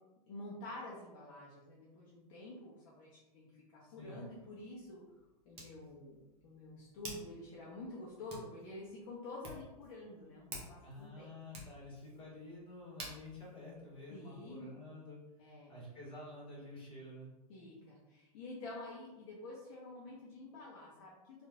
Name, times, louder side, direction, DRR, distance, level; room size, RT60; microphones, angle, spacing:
voice 1, 0.3-5.0 5.5-11.3 14.1-14.7 15.4-15.7 17.5-21.5, left 2 dB, 55° left, -6 dB, 0.7 m, -49 dB
voice 2, 3.8-4.2 10.8-17.3, left 2 dB, 25° left, -5 dB, 1.3 m, -50 dB
Hands, 4.0-14.7, right 2 dB, 30° right, 0.8 m, -54 dB
3.0 x 2.4 x 2.4 m, 1.0 s
figure-of-eight pair, 95°, 20 cm